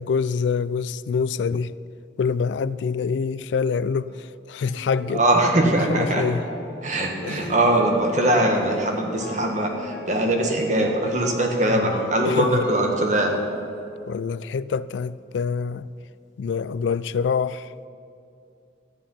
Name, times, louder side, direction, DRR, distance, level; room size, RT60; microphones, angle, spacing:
voice 1, 0.0-1.7 2.2-5.2 5.6-6.4 7.2-7.5 11.7-12.0 12.2-12.5 14.1-15.9 16.4-17.7, left 5 dB, 85° left, 0.3 m, -26 dB
sound 1, 4.6-13.8, left 1 dB, 55° left, 1.6 m, -39 dB
voice 2, 5.1-6.2 6.8-13.3, right 1 dB, 40° right, 1.6 m, -21 dB
13.5 x 10.5 x 5.6 m
head